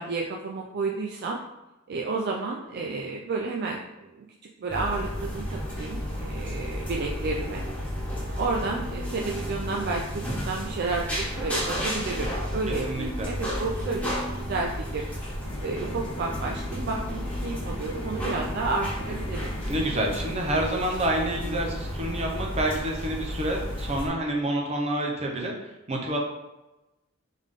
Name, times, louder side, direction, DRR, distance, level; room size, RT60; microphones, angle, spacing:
voice 1, 0.0-1.4 1.9-4.2 4.6-7.7 8.4-15.1 15.6-19.5, right 3 dB, 50° right, 0 dB, 0.4 m, -31 dB
sound 1, 4.7-24.1, equal, 5° left, 1.5 m, -32 dB
voice 2, 12.9-13.3 19.7-26.2, right 1 dB, 30° right, 0 dB, 0.8 m, -28 dB
sound 2, 15.4-20.4, left 1 dB, 55° left, 0.8 m, -42 dB
3.7 x 3.6 x 3.6 m, 1.0 s
head